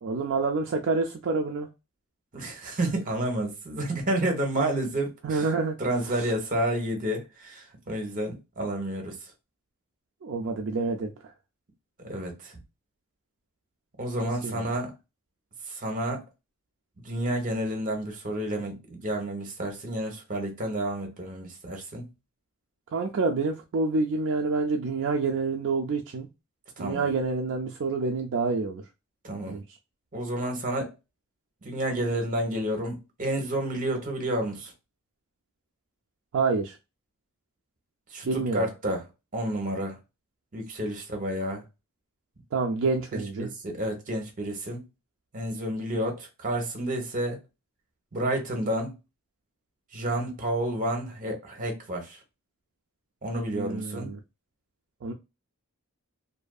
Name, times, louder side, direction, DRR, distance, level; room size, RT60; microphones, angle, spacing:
voice 1, 0.0-1.7 5.2-5.8 6.0-6.3 10.2-11.1 14.4-14.7 22.9-26.3 26.8-28.8 29.5-29.6 36.3-36.8 38.3-38.7 42.5-43.5 53.5-54.2 55.0-55.1, right 4 dB, 60° right, 0.4 m, -28 dB
voice 2, 2.3-5.4 5.8-9.2 12.0-12.5 14.0-14.9 15.7-16.2 17.0-22.1 26.8-27.1 29.2-29.6 30.1-30.9 31.6-34.7 38.1-39.1 39.3-40.0 40.5-41.6 43.1-44.8 45.3-47.4 48.1-48.9 49.9-52.2 53.2-54.1, right 1 dB, 40° right, 0.9 m, -30 dB
2.7 x 2.5 x 2.3 m
head